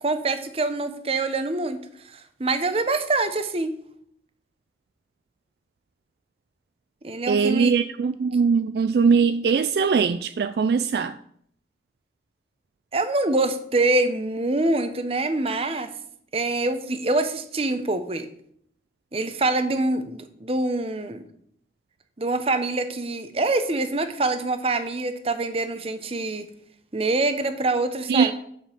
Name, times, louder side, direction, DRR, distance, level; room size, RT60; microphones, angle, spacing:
voice 1, 0.0-1.8 2.0-3.7 7.0-7.7 12.9-15.9 16.3-18.3 19.1-21.2 22.2-26.5 26.9-28.3, right 2 dB, 35° right, 0.8 m, -25 dB
voice 2, 7.3-11.1 28.1-28.3, right 5 dB, 60° right, 0.3 m, -21 dB
7.5 x 5.4 x 6.6 m
head